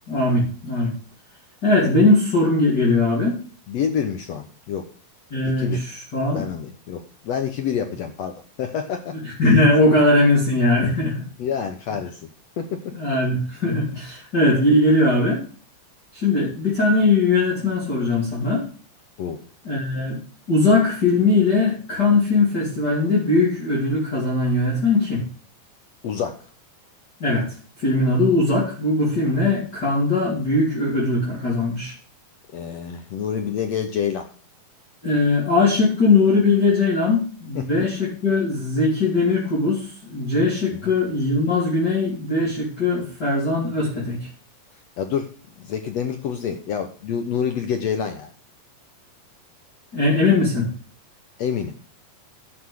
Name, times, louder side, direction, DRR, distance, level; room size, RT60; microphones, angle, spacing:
voice 1, 0.1-0.9 1.6-3.4 5.3-6.5 9.2-11.2 12.9-15.4 16.1-18.6 19.6-20.2 20.5-25.2 27.2-27.5 27.8-31.9 35.0-44.2 49.9-50.7, left 2 dB, 30° left, -5 dB, 3.2 m, -20 dB
voice 2, 3.7-4.9 5.4-5.8 6.3-9.1 11.4-12.2 12.6-12.9 19.2-19.4 26.0-26.4 32.5-34.3 37.5-37.7 40.8-40.9 45.0-45.3 45.6-48.3 51.4-51.8, left 7 dB, 70° left, 6 dB, 1.6 m, -27 dB
11.0 x 6.0 x 6.4 m, 0.39 s
omnidirectional pair, 4.2 m